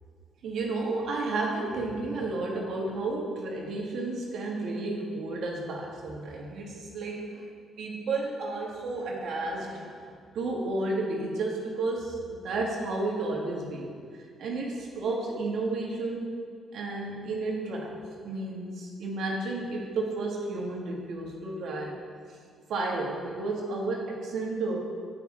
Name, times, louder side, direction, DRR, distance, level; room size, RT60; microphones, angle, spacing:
voice 1, 0.4-7.5 7.8-16.3 16.7-22.0 22.3-22.4 22.7-24.8, right 2 dB, 70° right, -1 dB, 1.3 m, -32 dB
9.2 x 5.0 x 3.6 m, 2.1 s
cardioid pair, 90°, 0 cm